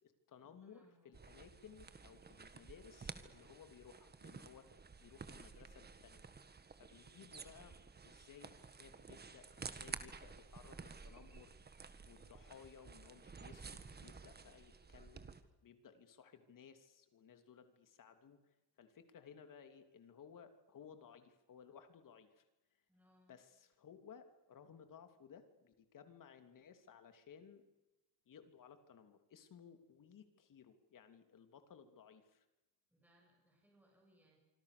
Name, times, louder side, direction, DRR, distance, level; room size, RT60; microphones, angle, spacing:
voice 1, 0.0-6.3 6.8-7.8 8.0-15.3 15.6-22.8 23.3-27.6 28.2-32.4, left 7 dB, 45° left, 8 dB, 3.2 m, -59 dB
voice 2, 0.6-1.1 6.7-6.8 22.9-23.5 32.9-34.4, equal, 5° right, -1 dB, 7.7 m, -71 dB
sound 1, 1.1-15.4, right 5 dB, 20° right, 1.7 m, -53 dB
26.0 x 25.5 x 6.9 m, 0.98 s
cardioid pair, 160°, 43 cm